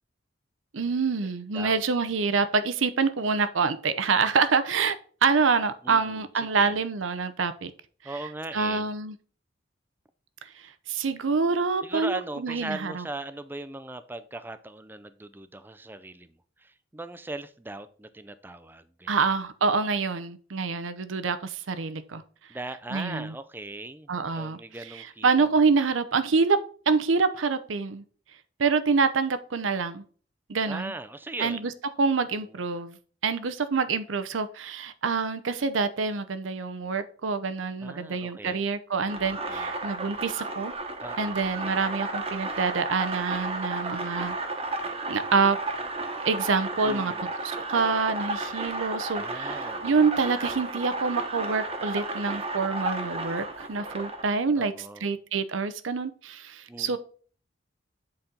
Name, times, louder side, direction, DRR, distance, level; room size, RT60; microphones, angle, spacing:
voice 1, 0.7-5.0 5.2-7.7 8.5-9.1 10.9-13.1 19.1-22.2 22.9-23.3 24.1-24.6 25.2-26.6 26.9-28.0 28.6-30.0 30.5-30.9 31.4-31.7 32.0-33.0 33.2-40.7 41.2-44.4 45.1-45.6 46.2-47.1 47.4-54.7 55.0-57.0, right 4 dB, 85° right, 12 dB, 0.7 m, -26 dB
voice 2, 5.8-6.8 8.0-8.9 11.8-19.2 22.5-25.5 30.7-31.7 32.3-32.6 37.8-38.6 39.3-39.7 41.0-41.7 46.8-47.3 49.1-50.1 54.6-55.1 56.7-57.0, right 2 dB, 10° right, 12 dB, 0.4 m, -39 dB
sound 1, 39.1-54.3, right 2 dB, 30° right, 1.0 m, -33 dB
7.8 x 4.2 x 3.8 m, 0.43 s
head